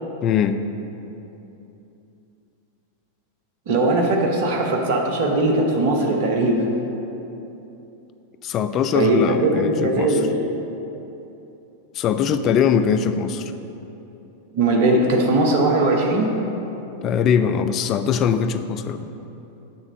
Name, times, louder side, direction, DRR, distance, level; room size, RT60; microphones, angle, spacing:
voice 1, 0.2-0.6 8.4-10.2 11.9-13.5 17.0-19.1, left 7 dB, 35° left, 9 dB, 0.3 m, -21 dB
voice 2, 3.7-6.7 8.9-10.3 14.5-16.4, right 2 dB, 50° right, 1 dB, 1.0 m, -19 dB
7.7 x 3.6 x 6.3 m, 3.0 s
figure-of-eight pair, 90°, 0 cm